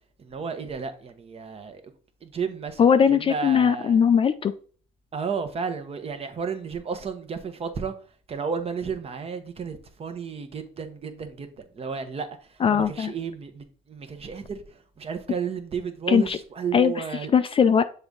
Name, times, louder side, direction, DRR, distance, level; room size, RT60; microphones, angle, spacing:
voice 1, 0.2-1.8 2.2-2.9 3.2-4.0 5.1-7.9 8.3-12.3 12.7-14.6 15.0-17.3, right 6 dB, 35° right, 1.0 m, -32 dB
voice 2, 2.8-4.5 12.6-13.1 16.1-16.4 16.7-17.0 17.3-17.8, left 7 dB, 35° left, 0.4 m, -20 dB
6.9 x 3.5 x 3.9 m
cardioid pair, 110°, 17 cm